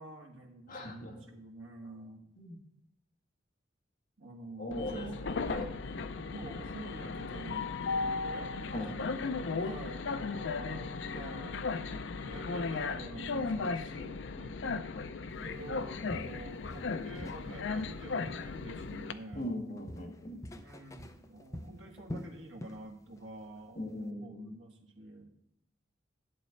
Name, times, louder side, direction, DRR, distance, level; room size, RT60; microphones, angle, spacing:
voice 1, 0.0-2.3 4.2-5.2 6.2-8.6 9.5-11.6 12.1-14.9 15.3-19.5 20.5-25.4, right 2 dB, 85° right, 3 dB, 1.4 m, -48 dB
voice 2, 0.7-1.3 2.4-2.6 4.6-5.7 8.7-9.0 19.3-20.4 23.8-24.6, left 1 dB, 45° left, -2 dB, 1.9 m, -39 dB
Train, 4.7-19.1, left 4 dB, 70° left, 0.5 m, -36 dB
Walk footsteps, 15.5-15.7 16.1-17.5 17.8-19.1 19.3-22.9 23.2-23.4 23.9-24.0, left 1 dB, 15° left, 0.5 m, -45 dB
11.0 x 4.2 x 6.9 m, 0.80 s
head